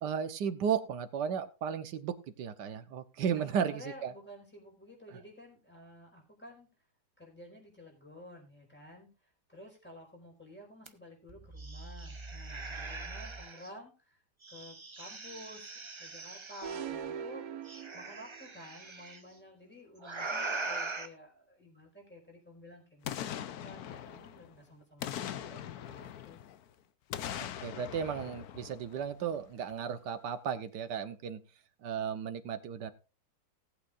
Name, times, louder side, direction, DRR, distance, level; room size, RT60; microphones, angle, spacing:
voice 1, 0.0-4.1 5.1-5.2 27.4-31.4 31.8-32.9, right 7 dB, 75° right, 10 dB, 1.6 m, -35 dB
voice 2, 3.2-6.7 7.2-14.2 14.5-17.5 17.9-26.4, left 1 dB, 5° left, -1 dB, 4.9 m, -52 dB
sound 1, 10.9-11.0 11.3-13.7 14.4-16.8 17.7-19.2 20.0-21.1, right 3 dB, 25° right, 0.6 m, -41 dB
sound 2, 16.6-18.6, right 8 dB, 60° right, 1.3 m, -41 dB
Boom, 23.0-24.6 25.0-26.6 27.1-29.4 29.7-29.8, left 10 dB, 65° left, 1.1 m, -41 dB
19.0 x 8.5 x 2.5 m, 0.32 s
omnidirectional pair, 1.9 m